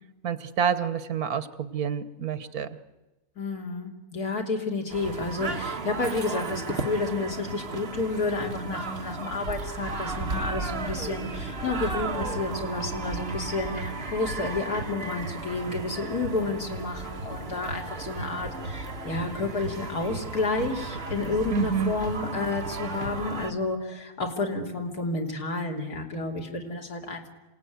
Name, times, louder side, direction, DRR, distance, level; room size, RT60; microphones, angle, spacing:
voice 1, 0.2-2.7 21.5-21.9, right 7 dB, 80° right, 13 dB, 1.7 m, -28 dB
voice 2, 3.4-27.3, left 3 dB, 90° left, 1 dB, 3.7 m, -30 dB
sound 1, 4.9-23.5, right 3 dB, 45° right, 1.6 m, -34 dB
27.5 x 18.0 x 9.5 m, 1.1 s
omnidirectional pair, 1.6 m